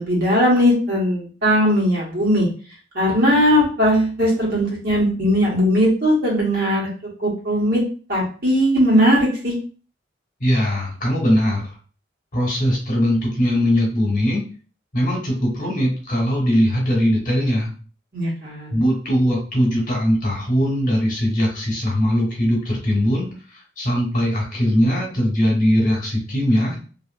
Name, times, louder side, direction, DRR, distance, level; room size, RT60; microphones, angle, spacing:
voice 1, 0.0-2.5 2.9-6.9 7.2-7.8 8.1-9.5 18.1-18.8, equal, 55° right, -5 dB, 1.4 m, -18 dB
voice 2, 10.4-11.6 12.3-14.4 14.9-17.7 18.7-26.8, equal, 45° left, -2 dB, 1.2 m, -20 dB
2.7 x 2.7 x 2.5 m, 0.37 s
head